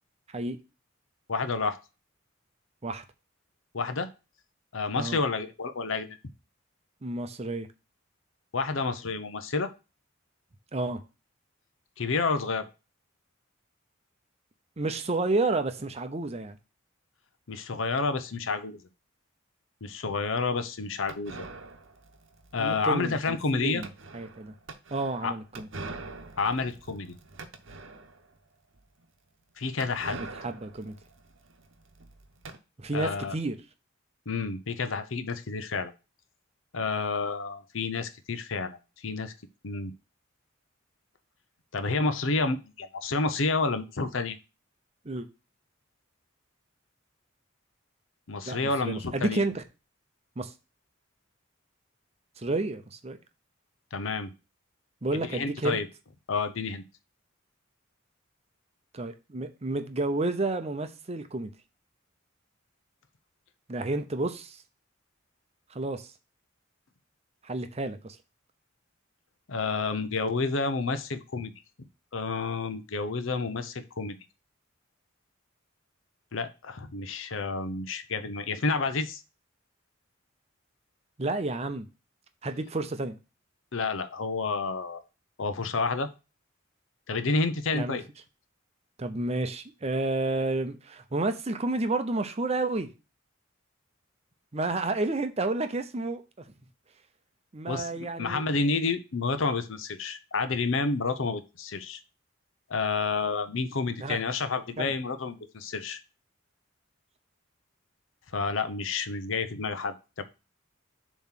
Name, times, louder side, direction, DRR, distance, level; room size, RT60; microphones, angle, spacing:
voice 1, 1.3-1.8 3.7-4.1 4.7-6.2 8.5-9.7 12.0-12.7 17.5-18.8 19.8-21.4 22.5-23.8 25.2-25.3 26.4-27.1 29.6-30.2 32.9-33.3 34.3-35.9 36.7-39.3 39.6-39.9 41.7-44.4 48.3-49.4 53.9-54.3 55.1-55.9 56.3-56.8 69.5-71.5 72.1-74.2 76.3-79.2 83.7-85.0 85.4-86.1 87.1-88.0 97.7-97.9 98.2-102.0 102.7-106.0 108.3-110.2, left 4 dB, 70° left, 10 dB, 0.8 m, -29 dB
voice 2, 7.0-7.7 10.7-11.0 14.8-16.6 22.6-24.5 24.9-25.7 30.1-31.0 32.8-33.6 45.0-45.3 48.5-49.6 50.4-50.5 52.4-53.2 55.0-55.8 58.9-61.5 63.7-64.6 65.7-66.1 67.4-68.2 81.2-81.9 82.4-83.2 87.7-88.0 89.0-92.9 94.5-96.2 97.5-98.4 104.0-104.2 104.8-104.9, right 2 dB, 30° right, 9 dB, 0.7 m, -30 dB
sound 1, 21.1-28.4 28.7-28.8 29.0-29.1 29.8-32.6, right 3 dB, 70° right, 0.9 m, -44 dB
7.1 x 3.1 x 5.7 m, 0.29 s
head